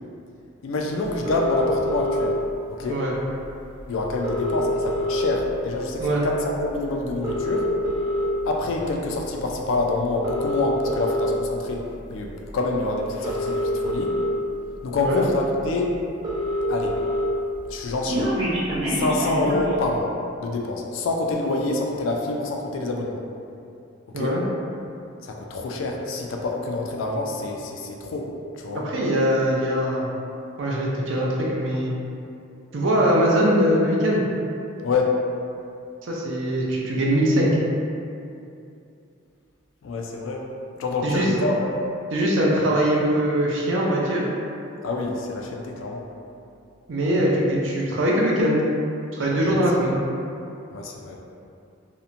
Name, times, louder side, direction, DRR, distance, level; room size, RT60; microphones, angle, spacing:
voice 1, 0.6-2.4 2.8-3.0 3.9-7.7 8.4-11.8 12.1-14.1 14.8-16.0 16.7-17.0 17.7-18.4 18.9-23.2 24.2-24.4 25.2-28.8 34.8-35.2 39.8-40.5 40.8-41.8 44.8-46.0 49.5-49.6 50.7-51.2, left 2 dB, 70° left, 0 dB, 0.3 m, -26 dB
sound 1, 1.3-2.3 3.4-3.5 3.8-3.9 4.1-5.5 6.0-6.2 7.1-8.2 9.0-9.2 10.1-11.3 12.5-12.6 13.1-14.2 14.9-15.0 15.3-15.4 15.7-15.8 15.9-17.2 17.6-19.7, equal, 20° right, 0.6 m, -26 dB
voice 2, 28.8-30.1 30.6-31.9 32.7-34.2 36.1-37.5 41.0-41.3 42.1-44.3 46.9-48.6 49.1-50.0, equal, 65° right, -3 dB, 0.5 m, -22 dB
2.8 x 2.1 x 2.5 m, 2.6 s
head